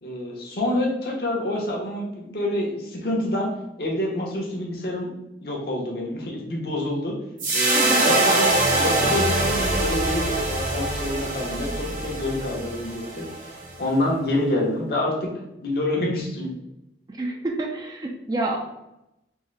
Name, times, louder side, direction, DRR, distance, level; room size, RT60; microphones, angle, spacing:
voice 1, 0.0-3.5 3.8-5.1 5.4-7.2 7.5-13.3 13.8-15.3 15.6-16.5, left 1 dB, 60° left, -2 dB, 0.8 m, -27 dB
sound 1, 7.4-13.8, right 2 dB, 45° right, 0.8 m, -23 dB
voice 2, 7.7-8.1 17.1-18.6, right 2 dB, 20° right, 1 dB, 0.3 m, -28 dB
3.5 x 2.1 x 3.2 m, 0.88 s
head